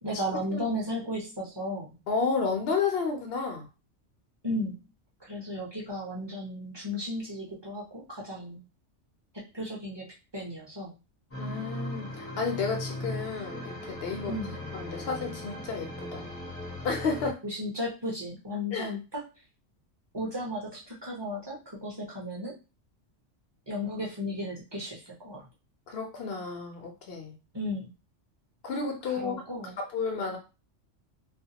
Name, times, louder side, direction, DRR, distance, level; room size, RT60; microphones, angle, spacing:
voice 1, 0.0-2.0 4.4-4.8 5.2-8.6 9.3-10.9 14.3-14.5 17.4-19.2 20.1-22.6 23.7-25.5 27.5-27.9 29.2-29.8, left 1 dB, 25° right, -3 dB, 0.7 m, -35 dB
voice 2, 2.1-3.7 11.4-14.4 14.7-16.4 16.8-17.4 18.7-18.9 25.9-27.4 28.6-29.4 29.9-30.4, left 5 dB, 60° left, 2 dB, 0.9 m, -31 dB
sound 1, 11.3-17.3, left 1 dB, 15° left, 0.7 m, -38 dB
2.4 x 2.3 x 2.8 m, 0.28 s
omnidirectional pair, 1.3 m